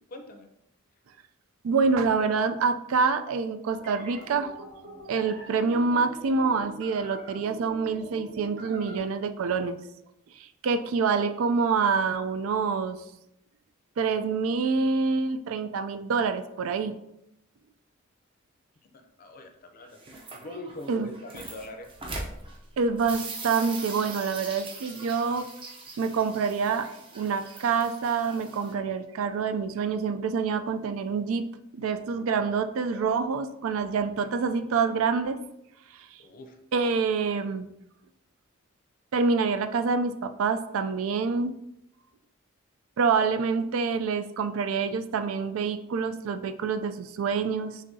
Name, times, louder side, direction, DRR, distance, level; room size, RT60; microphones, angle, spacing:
voice 1, 0.1-0.5 18.9-20.0 20.3-21.9 32.9-33.1 36.2-36.6, left 1 dB, 45° left, 6 dB, 0.5 m, -43 dB
voice 2, 1.6-4.5 5.1-9.8 10.4-13.0 14.0-16.9 20.9-21.1 22.8-25.5 26.0-31.4 31.7-35.4 36.7-37.7 39.1-41.6 43.0-47.8, right 5 dB, 85° right, 10 dB, 0.4 m, -26 dB
sound 1, 3.7-9.0, right 1 dB, 60° right, 1.1 m, -44 dB
sound 2, 19.8-28.7, right 3 dB, 25° right, 0.6 m, -41 dB
6.4 x 2.6 x 2.7 m, 0.83 s
head